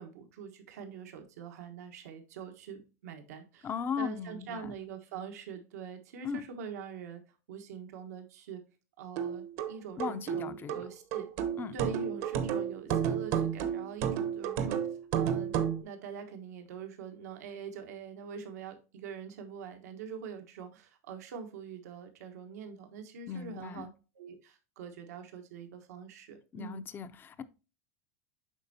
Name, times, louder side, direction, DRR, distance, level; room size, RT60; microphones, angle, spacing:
voice 1, 0.0-3.7 4.0-7.2 7.5-8.6 9.0-11.3 11.7-23.9 24.1-26.8, right 7 dB, 90° right, 1.2 m, -44 dB
voice 2, 3.6-4.7 6.2-6.4 10.0-10.8 11.6-11.7 23.3-23.9 26.5-27.4, left 7 dB, 25° left, 0.5 m, -37 dB
sound 1, 9.2-15.8, right 8 dB, 65° right, 1.0 m, -32 dB
8.1 x 5.2 x 2.7 m
supercardioid pair, 130°, 8 cm